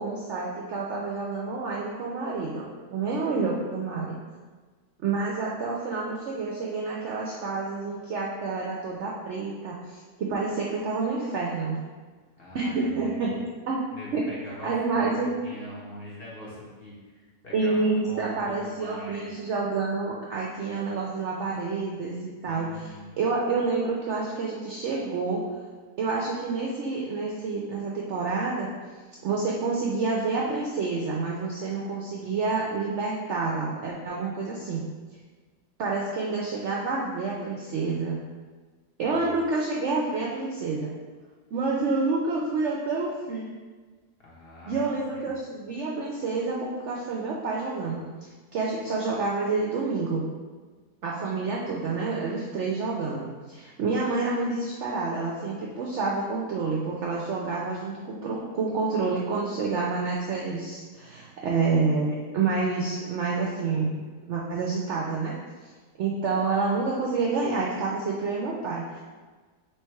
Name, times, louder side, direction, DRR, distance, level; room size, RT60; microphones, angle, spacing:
voice 1, 0.0-4.1 5.0-11.8 12.5-13.3 13.6-13.8 14.1-14.2 14.6-15.3 17.5-25.4 26.0-28.7 29.2-34.8 35.8-38.2 39.0-40.9 41.5-43.5 44.7-50.2 51.0-65.3 66.0-69.0, right 4 dB, 70° right, -3 dB, 0.7 m, -28 dB
voice 2, 12.4-13.4 13.9-19.4 22.4-23.1 39.0-39.2 44.2-45.3, left 1 dB, 45° left, -6 dB, 1.0 m, -42 dB
3.3 x 3.1 x 4.4 m, 1.4 s
omnidirectional pair, 1.7 m